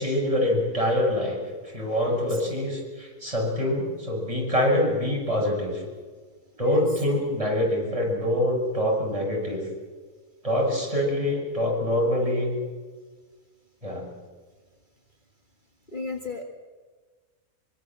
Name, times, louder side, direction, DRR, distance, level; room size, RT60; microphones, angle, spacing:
voice 1, 0.0-1.4 1.7-5.8 6.6-9.6 10.4-12.6 13.8-14.1, left 1 dB, 25° right, -2 dB, 7.4 m, -25 dB
voice 2, 2.0-2.4 6.6-7.0 10.7-10.8 15.9-16.4, left 3 dB, 35° left, 2 dB, 2.0 m, -36 dB
24.5 x 24.0 x 7.6 m, 1.4 s
omnidirectional pair, 1.5 m